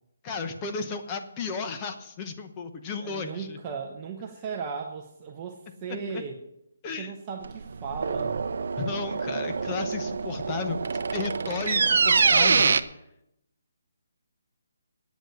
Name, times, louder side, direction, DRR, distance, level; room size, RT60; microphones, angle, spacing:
voice 1, 0.2-3.6 5.9-6.2 6.8-7.1 8.8-12.8, left 5 dB, 15° left, 6 dB, 0.9 m, -34 dB
voice 2, 3.0-6.4 7.0-8.4, right 5 dB, 20° right, 1 dB, 0.8 m, -36 dB
sound 1, 7.4-12.8, right 5 dB, 55° right, 0.6 m, -25 dB
9.2 x 8.0 x 8.9 m, 0.81 s
hypercardioid pair, 170°, 0 cm